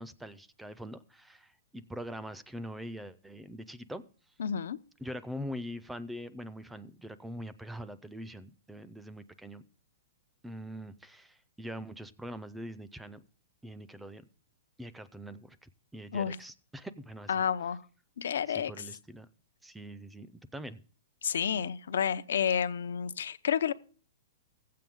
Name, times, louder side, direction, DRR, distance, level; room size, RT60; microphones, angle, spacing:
voice 1, 0.0-4.4 5.0-9.6 10.4-13.2 13.6-14.2 14.8-17.8 18.5-19.3 19.6-20.8, equal, 5° right, 0.5 m, -43 dB
voice 2, 4.4-4.8 16.1-16.4 17.3-17.8 18.2-18.7 21.2-23.7, left 8 dB, 85° left, 0.6 m, -30 dB
15.0 x 7.6 x 3.6 m
hypercardioid pair, 145°, 0 cm